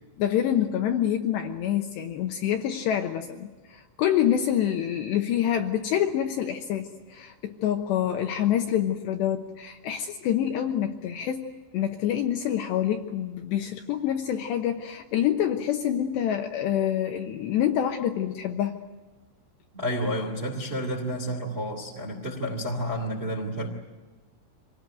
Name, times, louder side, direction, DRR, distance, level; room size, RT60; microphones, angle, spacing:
voice 1, 0.2-18.7, left 10 dB, 75° left, 4 dB, 2.8 m, -27 dB
voice 2, 19.7-23.7, equal, 20° right, 2 dB, 1.8 m, -30 dB
25.5 x 19.0 x 9.1 m, 1.3 s
omnidirectional pair, 5.9 m